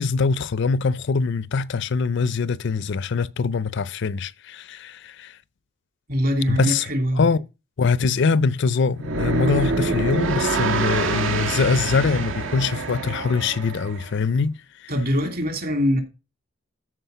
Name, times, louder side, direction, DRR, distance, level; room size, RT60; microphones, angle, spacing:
voice 1, 0.0-5.4 6.5-6.9 7.1-7.4 7.8-14.9, left 4 dB, 60° left, 0.5 m, -23 dB
voice 2, 6.1-7.3 14.9-16.0, equal, 50° right, 2.9 m, -22 dB
sound 1, 9.0-14.1, right 3 dB, 70° right, 1.6 m, -26 dB
13.5 x 4.9 x 6.8 m
head